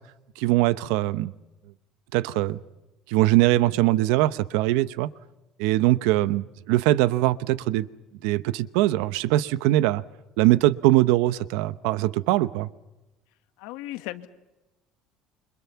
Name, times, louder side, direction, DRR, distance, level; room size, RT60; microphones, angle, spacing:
voice 1, 0.4-1.3 2.1-2.6 3.1-5.1 5.6-7.9 8.2-10.0 10.4-12.7, right 16 dB, 85° right, 16 dB, 0.9 m, -22 dB
voice 2, 13.6-14.3, left 16 dB, 85° left, 10 dB, 1.6 m, -36 dB
29.0 x 25.5 x 5.8 m, 1.0 s
cardioid pair, 180°, 0 cm